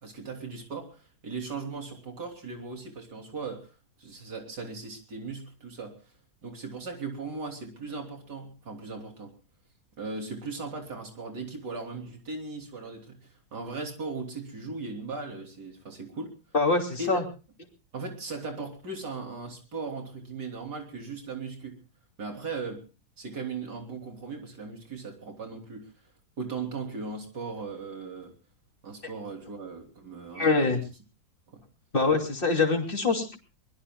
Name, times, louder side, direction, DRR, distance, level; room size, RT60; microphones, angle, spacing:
voice 1, 0.0-3.7 4.0-5.9 6.4-9.3 10.0-13.2 13.5-16.3 17.0-17.1 17.9-21.8 22.2-22.8 23.2-25.9 26.4-28.3 28.8-30.8 31.5-31.6, right 4 dB, 80° right, 2 dB, 3.9 m, -38 dB
voice 2, 16.5-17.2 30.4-30.8 31.9-33.4, left 3 dB, 30° left, 2 dB, 3.1 m, -24 dB
23.5 x 20.5 x 2.3 m, 0.33 s
omnidirectional pair, 1.8 m